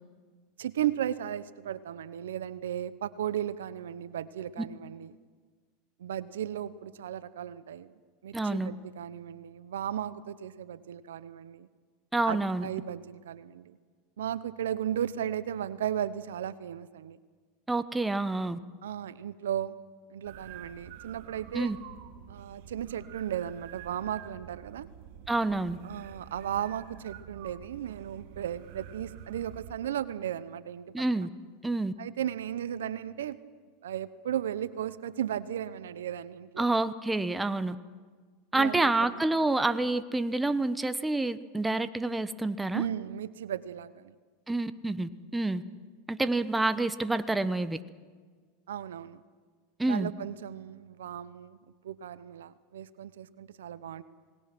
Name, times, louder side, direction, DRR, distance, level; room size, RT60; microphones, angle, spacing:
voice 1, 0.6-5.1 6.0-7.9 8.2-11.7 12.3-13.8 14.2-17.2 18.8-19.8 20.1-21.7 22.3-24.9 25.8-31.3 32.0-33.4 33.8-36.7 38.5-39.2 42.7-44.1 48.7-49.2 49.8-51.6 51.8-54.0, right 10 dB, 85° right, 15 dB, 0.9 m, -35 dB
voice 2, 8.3-8.7 12.1-12.6 17.7-18.6 21.5-21.8 25.3-25.8 30.9-31.3 31.6-31.9 36.6-37.8 38.5-42.8 44.5-45.6 46.1-47.8 49.8-50.1, right 2 dB, 10° right, 12 dB, 1.0 m, -28 dB
sound 1, 20.2-29.8, right 10 dB, 65° right, 1.7 m, -48 dB
27.5 x 20.0 x 6.1 m, 1.5 s
hypercardioid pair, 100°, 0 cm